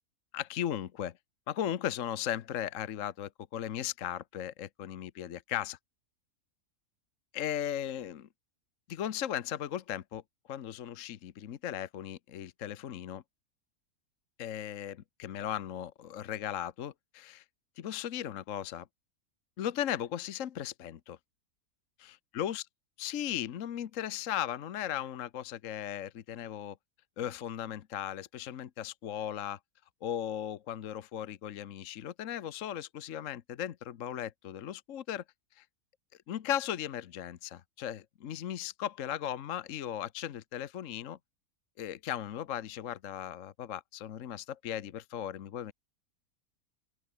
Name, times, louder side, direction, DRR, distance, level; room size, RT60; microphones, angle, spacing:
voice 1, 0.3-1.2 1.5-5.8 7.3-8.3 8.9-10.2 10.5-13.2 14.4-17.4 17.8-18.9 19.6-21.2 22.0-22.6 23.0-26.8 27.2-29.6 30.0-35.2 35.6-35.7 36.3-41.2 41.8-45.7, left 10 dB, 60° left, 1.2 m, -37 dB
open air
omnidirectional pair, 1.6 m